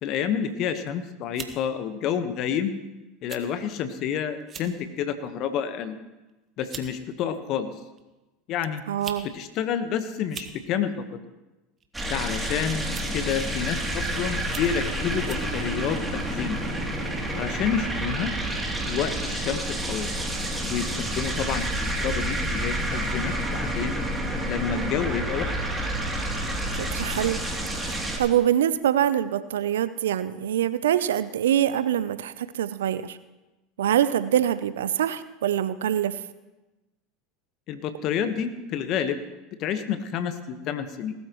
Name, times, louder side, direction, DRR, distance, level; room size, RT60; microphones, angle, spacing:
voice 1, 0.0-2.7 3.2-6.0 6.6-7.7 8.5-8.8 9.2-11.2 12.1-12.8 13.1-16.6 17.3-18.3 18.9-20.1 20.6-24.0 24.4-25.5 37.7-39.2 39.6-41.1, left 8 dB, 50° left, 9 dB, 1.3 m, -29 dB
sound 1, 0.7-0.9 1.3-1.6 2.4-2.6 3.3-3.4 3.8-3.9 4.4-4.7 5.2-5.5 6.3-6.4 6.7-6.9 8.0-8.1 8.8-9.3 9.5-9.6 10.2-10.6 11.8-12.1 12.9-13.2 13.8-13.9 14.4-14.8 15.3-15.5, right 7 dB, 35° right, 1.5 m, -40 dB
voice 2, 8.9-9.3 26.8-27.4 27.8-33.2 33.8-36.2, right 10 dB, 80° right, 14 dB, 0.6 m, -24 dB
sound 2, 11.9-28.2, right 1 dB, 10° right, 2.9 m, -29 dB
19.0 x 13.0 x 3.1 m, 1.1 s
hypercardioid pair, 85°, 0 cm